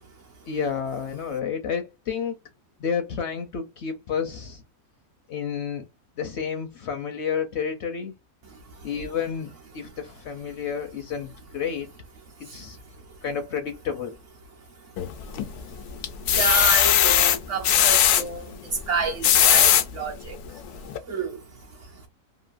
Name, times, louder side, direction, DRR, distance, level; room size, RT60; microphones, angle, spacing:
voice 1, 0.5-2.4 2.8-4.6 5.3-5.8 6.2-8.1 8.8-11.9 12.4-12.8 13.2-14.2, left 7 dB, 60° left, 0.7 m, -30 dB
sound 1, 15.0-15.6 16.0-18.2 19.0-19.8 20.5-20.6 20.9-21.0, left 10 dB, 85° left, 1.1 m, -18 dB
voice 2, 16.3-20.4 21.1-21.4, right 4 dB, 65° right, 0.9 m, -29 dB
3.0 x 2.5 x 2.4 m
omnidirectional pair, 1.6 m